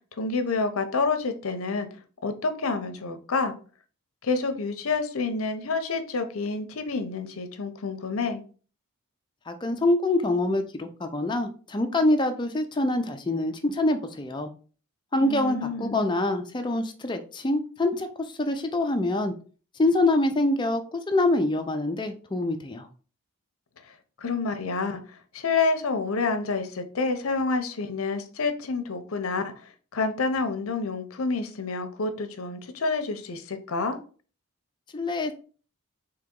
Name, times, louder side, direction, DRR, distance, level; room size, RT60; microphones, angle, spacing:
voice 1, 0.2-1.9 2.2-3.5 4.2-8.4 15.2-16.0 24.2-29.5 29.9-34.0, left 4 dB, 70° left, 8 dB, 0.6 m, -28 dB
voice 2, 9.5-14.5 15.1-18.1 18.4-19.3 19.8-22.9 34.9-35.3, left 2 dB, 20° left, 6 dB, 0.5 m, -25 dB
3.9 x 2.9 x 3.7 m, 0.40 s
head